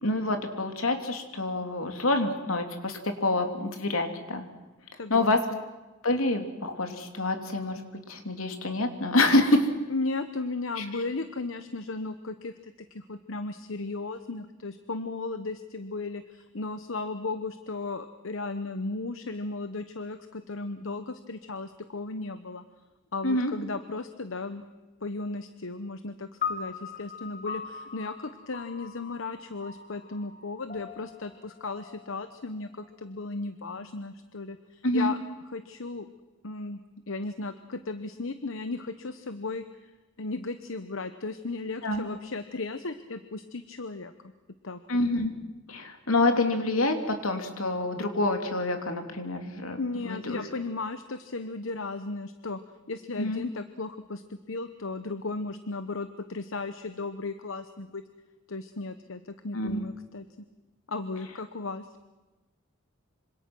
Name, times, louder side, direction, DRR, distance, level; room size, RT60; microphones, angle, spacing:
voice 1, 0.0-4.5 5.1-5.4 6.0-7.8 8.1-9.7 10.8-10.9 23.2-23.5 34.8-35.1 41.8-42.1 44.9-45.3 45.7-49.8 50.0-50.4 53.2-53.4 59.5-59.8, left 2 dB, 85° left, 5 dB, 3.0 m, -27 dB
voice 2, 5.0-5.6 9.9-22.6 23.1-24.6 25.0-35.2 35.5-36.1 36.4-36.8 37.1-39.9 40.2-44.1 44.6-44.8 49.8-52.6 52.9-58.0 58.5-60.5 60.9-61.9, left 3 dB, 70° left, 10 dB, 1.0 m, -35 dB
sound 1, 26.4-32.9, left 6 dB, 40° left, 1.6 m, -40 dB
26.5 x 26.0 x 6.2 m, 1.1 s
head